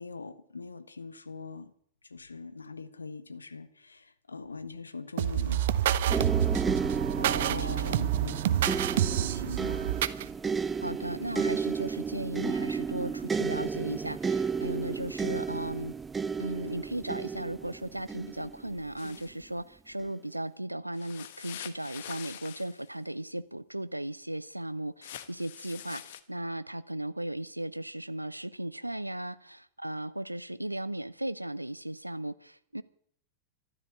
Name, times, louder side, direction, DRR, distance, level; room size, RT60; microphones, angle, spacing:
voice 1, 0.0-1.7 2.0-5.8 7.3-9.9, left 4 dB, 75° left, 1.0 m, -43 dB
sound 1, 5.2-10.3, right 11 dB, 55° right, 0.8 m, -28 dB
sound 2, 6.1-19.2 20.0-20.2, right 5 dB, 15° right, 0.5 m, -33 dB
voice 2, 7.2-7.9 10.8-15.9 16.4-26.0 26.3-32.8, right 1 dB, 85° right, 0.5 m, -36 dB
sound 3, 19.0-19.3 20.9-22.9 25.0-26.2, left 11 dB, 55° left, 1.2 m, -45 dB
14.0 x 12.0 x 7.9 m
figure-of-eight pair, 90°, 0 cm